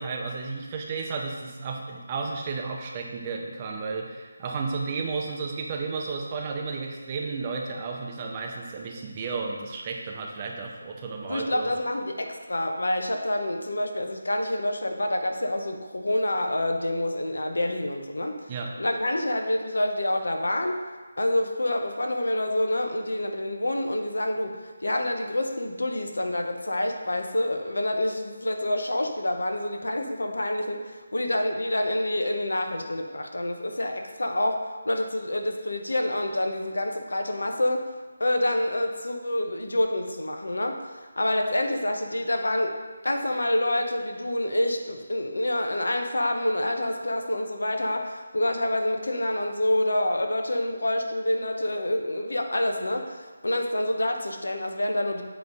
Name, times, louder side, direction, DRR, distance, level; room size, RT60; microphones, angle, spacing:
voice 1, 0.0-11.7 18.5-18.8, right 4 dB, 25° right, 1 dB, 0.6 m, -33 dB
voice 2, 11.3-18.4 18.8-20.8 21.2-37.9 38.2-40.8 41.2-42.7 43.0-55.2, left 1 dB, 85° left, 4 dB, 0.9 m, -27 dB
8.0 x 3.3 x 5.3 m, 1.3 s
figure-of-eight pair, 165°, 0 cm